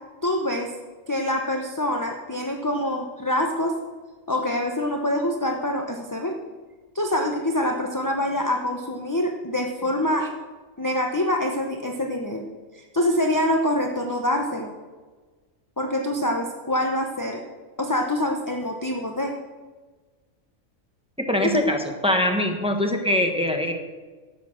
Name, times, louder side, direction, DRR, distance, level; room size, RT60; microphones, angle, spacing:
voice 1, 0.2-0.7 1.1-3.7 4.3-6.4 6.9-10.3 10.8-12.4 12.7-14.7 15.8-17.4 17.8-19.3 21.5-21.7, left 1 dB, 15° left, 2 dB, 0.8 m, -25 dB
voice 2, 21.2-23.7, left 1 dB, 5° right, 3 dB, 1.2 m, -23 dB
11.5 x 8.4 x 6.4 m, 1.4 s
omnidirectional pair, 1.4 m